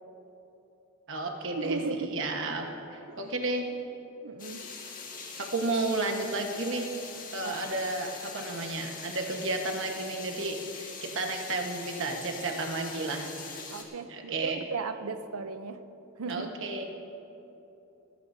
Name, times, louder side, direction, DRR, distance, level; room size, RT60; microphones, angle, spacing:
voice 1, 1.1-3.7 5.4-6.9 7.3-13.3 14.1-14.6 16.3-16.8, right 2 dB, 60° right, 3 dB, 1.3 m, -32 dB
voice 2, 1.6-2.3 3.1-3.2 4.2-4.6 7.4-7.5 13.7-15.8 16.2-16.5, right 4 dB, 80° right, 11 dB, 0.6 m, -36 dB
sound 1, 4.4-13.8, left 4 dB, 40° left, 1.7 m, -42 dB
19.0 x 14.5 x 2.7 m, 3.0 s
head